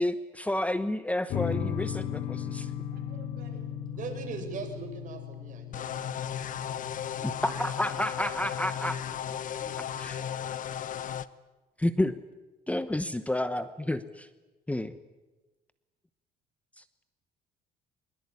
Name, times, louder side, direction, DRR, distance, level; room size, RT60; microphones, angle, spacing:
voice 1, 0.0-2.7 7.2-9.2 10.0-10.2 11.8-12.2 12.7-14.3 14.7-14.9 16.8-16.9, left 1 dB, 10° left, 12 dB, 1.0 m, -30 dB
sound 1, 1.3-10.3, left 8 dB, 65° left, 3.0 m, -38 dB
voice 2, 2.9-3.8 7.1-8.5 9.5-11.2, right 5 dB, 65° right, 2 dB, 7.9 m, -54 dB
voice 3, 3.9-5.9, right 5 dB, 50° right, 5 dB, 6.4 m, -39 dB
sound 2, 5.7-11.2, left 9 dB, 50° left, 1.0 m, -35 dB
22.5 x 22.0 x 9.8 m, 1.2 s
cardioid pair, 110°, 17 cm